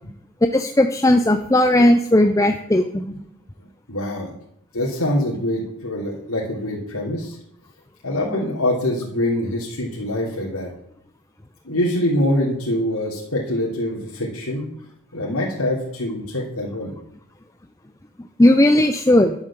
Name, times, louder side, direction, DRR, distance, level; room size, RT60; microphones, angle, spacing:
voice 1, 0.5-3.1 18.4-19.3, left 1 dB, 15° left, 7 dB, 0.5 m, -16 dB
voice 2, 3.9-4.3 4.7-7.4 8.0-10.7 11.6-14.6 15.1-16.9, left 1 dB, 85° left, -4 dB, 3.4 m, -24 dB
11.5 x 7.4 x 7.3 m, 0.76 s
head